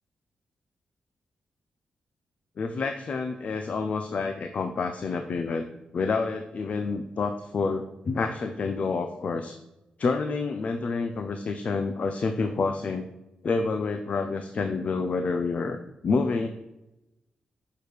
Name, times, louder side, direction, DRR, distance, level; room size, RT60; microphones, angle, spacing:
voice 1, 2.6-5.7 5.9-9.6 10.0-13.1 13.4-15.8 16.0-16.5, left 4 dB, 55° left, 7 dB, 0.6 m, -28 dB
6.8 x 4.6 x 4.9 m, 0.95 s
cardioid pair, 85°, 3 cm